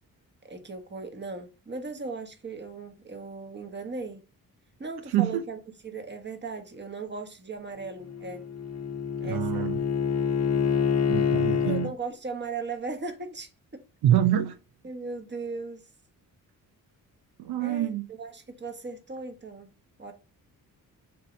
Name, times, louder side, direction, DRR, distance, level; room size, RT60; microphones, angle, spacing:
voice 1, 0.4-4.2 4.8-8.4 9.2-9.7 11.5-13.8 14.8-15.9 17.6-19.7 20.0-20.1, right 4 dB, 30° right, 1.4 m, -38 dB
voice 2, 5.1-5.4 9.2-9.8 11.1-11.9 14.0-14.6 17.4-18.1, right 11 dB, 80° right, 0.7 m, -25 dB
Bowed string instrument, 7.8-11.9, left 7 dB, 45° left, 1.0 m, -27 dB
6.7 x 3.0 x 5.0 m
cardioid pair, 75°, 37 cm